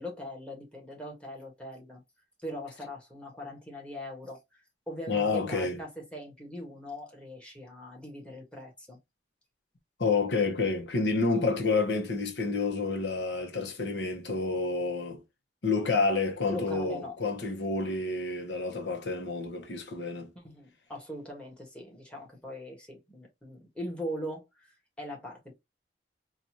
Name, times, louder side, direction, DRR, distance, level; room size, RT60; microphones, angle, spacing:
voice 1, 0.0-2.0 2.4-9.0 11.3-11.5 16.5-17.2 20.3-24.7 25.0-25.6, equal, 5° left, 1.5 m, -41 dB
voice 2, 5.1-5.8 10.0-15.2 15.6-20.3, left 3 dB, 75° left, 0.9 m, -29 dB
4.0 x 2.5 x 2.9 m
head